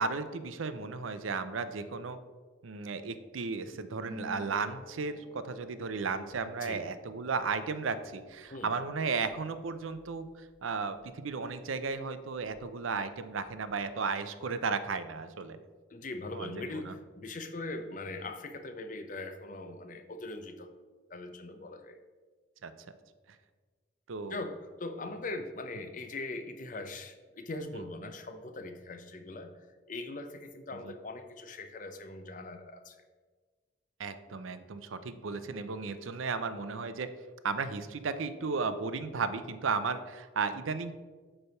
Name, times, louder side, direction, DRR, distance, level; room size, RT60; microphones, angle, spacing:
voice 1, 0.0-2.2 2.6-10.3 10.6-15.6 16.3-16.9 22.6-22.7 24.1-24.4 30.8-30.9 34.0-37.1 37.4-40.9, right 4 dB, 85° right, 12 dB, 0.6 m, -34 dB
Harp, 4.0-11.5 11.8-12.9 13.2-13.8, left 2 dB, 25° right, 1.6 m, -54 dB
voice 2, 15.9-20.7 21.1-22.0 24.3-33.0, left 2 dB, 40° left, 7 dB, 0.6 m, -41 dB
8.7 x 3.4 x 6.7 m, 1.4 s
head